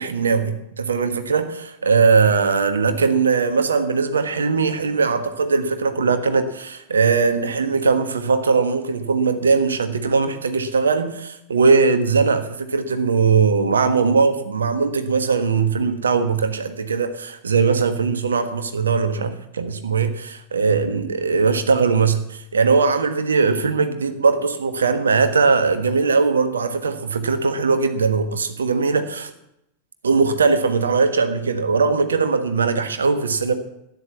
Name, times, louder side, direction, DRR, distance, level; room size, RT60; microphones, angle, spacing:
voice 1, 0.0-29.3 30.0-33.5, right 4 dB, 70° right, 9 dB, 1.5 m, -20 dB
12.5 x 9.9 x 7.3 m, 0.82 s
figure-of-eight pair, 90°, 0 cm